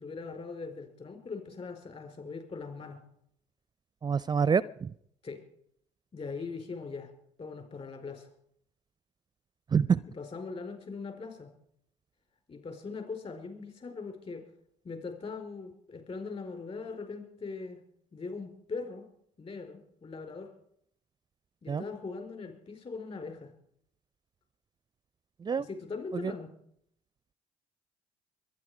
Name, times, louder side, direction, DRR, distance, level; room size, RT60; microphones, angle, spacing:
voice 1, 0.0-3.0 5.2-5.4 6.1-7.1 7.4-8.3 10.1-11.5 12.5-14.4 14.8-17.8 18.1-19.1 19.4-20.5 21.6-23.5 25.5-26.5, left 4 dB, 40° left, 5 dB, 4.8 m, -40 dB
voice 2, 4.0-4.9 9.7-10.0 21.7-21.8 25.4-25.7 26.1-26.3, right 6 dB, 25° right, 20 dB, 0.5 m, -27 dB
23.0 x 9.8 x 5.0 m, 0.70 s
hypercardioid pair, 60°, 16 cm